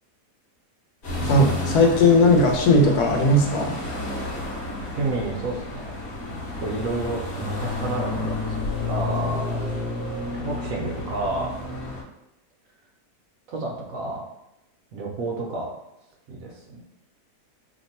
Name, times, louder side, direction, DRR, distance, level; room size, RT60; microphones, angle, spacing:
sound 1, 1.0-12.0, left 2 dB, 50° left, 1.0 m, -30 dB
voice 1, 1.2-3.8, left 2 dB, 75° left, 2 dB, 1.1 m, -18 dB
voice 2, 4.9-5.9 6.2-8.6 8.9-9.7 10.3-11.5 13.5-14.2 14.9-15.7 16.3-16.8, right 2 dB, 65° right, -1 dB, 0.9 m, -30 dB
2.9 x 2.1 x 4.1 m, 0.89 s
omnidirectional pair, 1.8 m